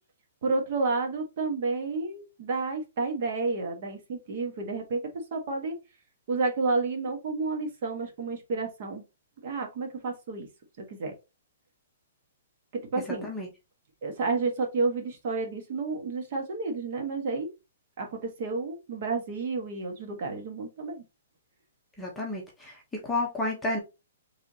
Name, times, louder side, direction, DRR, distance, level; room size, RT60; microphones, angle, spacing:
voice 1, 0.4-5.0 5.3-5.7 6.3-9.0 9.4-10.5 10.9-11.1 12.9-13.3 14.0-17.5 18.0-21.0, right 3 dB, 40° right, 1.3 m, -30 dB
voice 2, 22.0-23.8, left 2 dB, 5° left, 1.0 m, -31 dB
4.5 x 3.4 x 2.8 m
hypercardioid pair, 170°, 0 cm